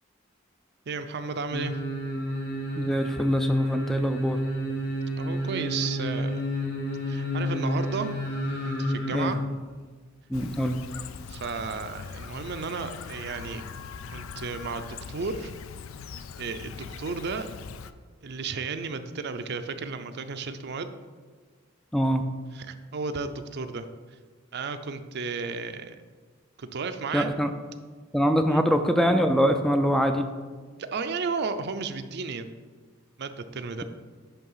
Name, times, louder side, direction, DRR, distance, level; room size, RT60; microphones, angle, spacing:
voice 1, 0.9-1.8 5.2-6.4 7.1-8.1 8.6-9.4 11.3-13.6 14.1-15.5 16.4-17.5 18.2-20.9 22.5-24.2 24.5-26.0 26.6-27.3 28.5-28.6 30.8-32.5 33.2-33.8, right 4 dB, 55° right, 9 dB, 0.5 m, -33 dB
sound 1, 1.5-9.4 9.7-9.8, equal, 55° left, 1.7 m, -30 dB
voice 2, 2.8-4.4 9.1-9.4 10.3-10.8 21.9-22.2 27.1-27.5 28.1-30.3, equal, ahead, 6 dB, 0.3 m, -24 dB
Chirp tweet, 10.3-17.9, left 6 dB, 75° left, 0.4 m, -41 dB
10.5 x 3.5 x 5.5 m, 1.5 s
head